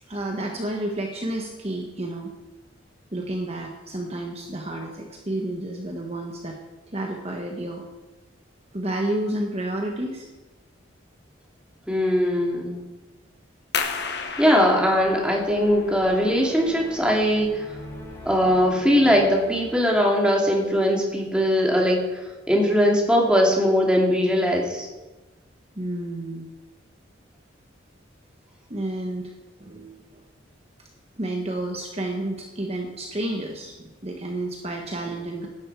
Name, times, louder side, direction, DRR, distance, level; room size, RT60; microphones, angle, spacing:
voice 1, 0.1-2.3 3.1-6.6 6.9-7.8 8.7-10.3 25.8-26.5 28.7-29.3 29.6-30.2 31.2-35.5, right 1 dB, 30° right, 1 dB, 1.3 m, -30 dB
voice 2, 11.9-12.8 14.4-17.6 18.3-22.0 22.5-24.9, equal, 5° right, -1 dB, 2.5 m, -20 dB
sound 1, 13.7-19.1, left 5 dB, 55° left, 1.4 m, -35 dB
sound 2, 15.5-20.1, equal, 10° left, 5.1 m, -41 dB
17.0 x 11.5 x 4.8 m, 1.1 s
head